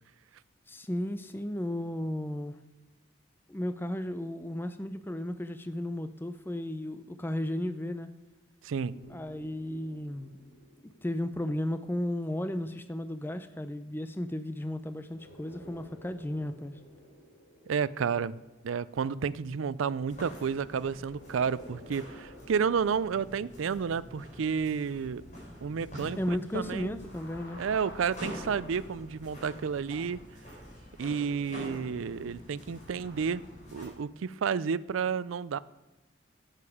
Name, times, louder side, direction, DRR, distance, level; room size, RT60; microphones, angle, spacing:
voice 1, 0.7-2.6 3.5-8.1 9.1-10.4 10.8-16.7 26.2-27.6, left 1 dB, 10° left, 10 dB, 0.5 m, -34 dB
voice 2, 8.6-9.0 17.7-25.3 25.6-26.2 26.5-27.0 27.6-30.2 31.0-33.4 33.7-35.6, right 6 dB, 85° right, 18 dB, 0.4 m, -31 dB
sound 1, 8.8-13.3 15.0-20.5 20.9-26.6 26.9-28.6, left 1 dB, 75° left, 3.0 m, -54 dB
sound 2, 20.1-33.9, equal, 40° left, 4.5 m, -46 dB
11.5 x 9.0 x 4.9 m, 1.1 s
head